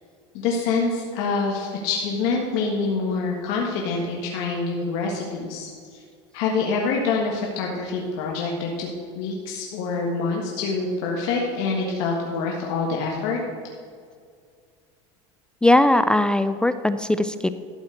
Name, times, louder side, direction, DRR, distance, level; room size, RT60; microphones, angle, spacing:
voice 1, 0.3-6.0 6.3-8.9 9.1-13.4, left 4 dB, 70° left, -1 dB, 1.5 m, -26 dB
voice 2, 15.6-17.5, left 1 dB, 5° left, 11 dB, 0.3 m, -19 dB
12.5 x 4.3 x 7.7 m, 2.1 s
supercardioid pair, 125°, 13 cm